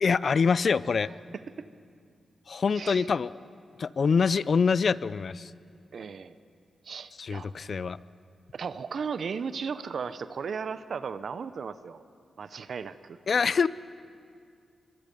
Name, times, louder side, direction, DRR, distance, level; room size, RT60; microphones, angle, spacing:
voice 1, 0.0-1.1 2.5-3.3 3.8-5.5 7.2-8.0 13.3-13.7, left 5 dB, 60° left, 19 dB, 0.4 m, -25 dB
voice 2, 2.8-3.1 5.9-6.3 6.8-7.5 8.5-12.0 12.4-13.2, right 6 dB, 70° right, 13 dB, 0.7 m, -35 dB
23.5 x 22.0 x 5.4 m, 2.3 s
supercardioid pair, 45°, 0 cm